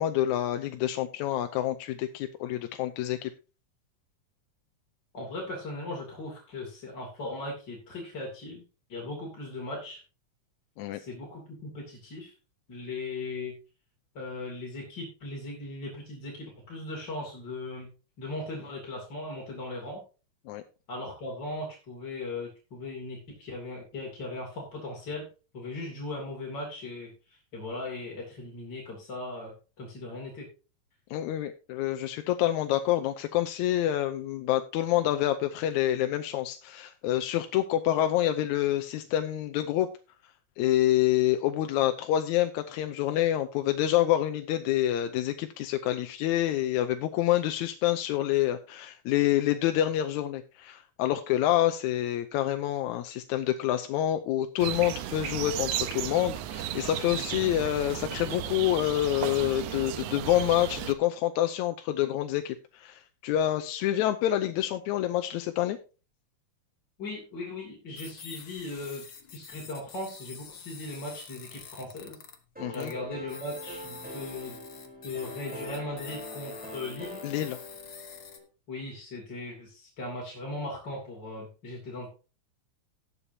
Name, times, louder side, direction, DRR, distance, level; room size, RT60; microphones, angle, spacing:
voice 1, 0.0-3.3 10.8-11.0 20.5-20.6 31.1-39.9 40.6-65.8 72.6-72.9 77.2-77.6, left 13 dB, 80° left, 8 dB, 2.0 m, -27 dB
voice 2, 5.1-8.6 8.9-10.0 10.9-12.3 12.7-13.5 14.1-17.9 18.2-20.0 20.9-25.3 25.5-30.5 67.0-69.0 69.3-72.2 72.7-74.6 75.0-77.2 78.7-82.1, left 2 dB, 35° left, -3 dB, 3.2 m, -38 dB
sound 1, 54.6-60.9, right 11 dB, 80° right, 2.1 m, -34 dB
sound 2, 68.0-72.4 72.7-73.0 73.3-78.4, left 7 dB, 55° left, 1.1 m, -47 dB
sound 3, 72.5-78.4, equal, 5° right, 3.6 m, -43 dB
18.5 x 6.9 x 2.8 m, 0.33 s
omnidirectional pair, 3.4 m